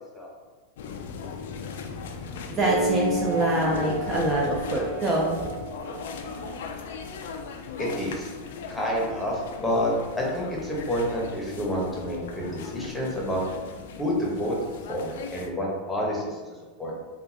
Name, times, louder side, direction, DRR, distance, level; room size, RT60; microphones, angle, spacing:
sound 1, 0.8-15.5, left 5 dB, 75° left, 0.3 m, -38 dB
voice 1, 2.5-5.5, right 1 dB, 25° right, -3 dB, 0.6 m, -25 dB
sound 2, 2.6-7.5, right 2 dB, 80° right, 0.4 m, -32 dB
voice 2, 7.8-8.3 8.7-13.4 14.0-14.6 14.9-16.4 16.8-16.9, equal, 10° left, -4 dB, 1.0 m, -28 dB
3.6 x 2.3 x 2.8 m, 1.3 s
hypercardioid pair, 110°, 0 cm